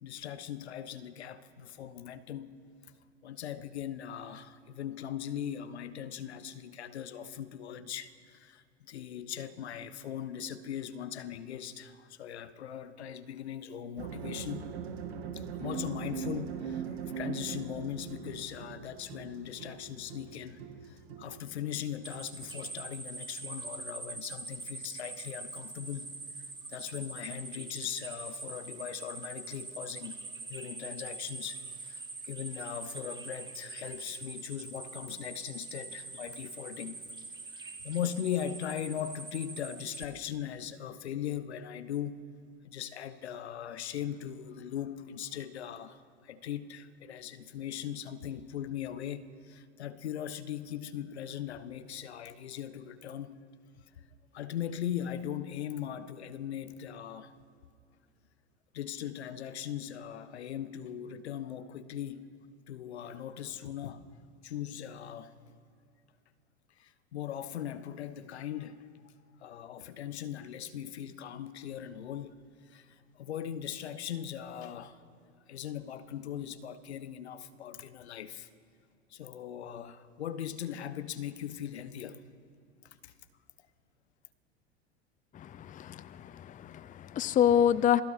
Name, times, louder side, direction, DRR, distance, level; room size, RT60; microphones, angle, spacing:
voice 1, 0.0-2.9 3.2-14.7 15.3-26.2 26.7-30.2 30.5-37.1 37.6-42.2 42.6-53.4 54.3-57.3 58.7-62.4 62.7-64.0 64.4-65.3 66.8-68.9 69.4-72.4 72.7-75.0 75.5-78.5 79.1-82.2 83.0-83.1, left 10 dB, 80° left, 1.2 m, -39 dB
sound 1, 14.0-22.9, right 7 dB, 70° right, 2.2 m, -41 dB
sound 2, 22.0-40.0, right 3 dB, 15° right, 2.6 m, -44 dB
voice 2, 85.3-88.0, left 10 dB, 25° left, 0.6 m, -27 dB
27.0 x 17.5 x 5.8 m
hypercardioid pair, 85°, 32 cm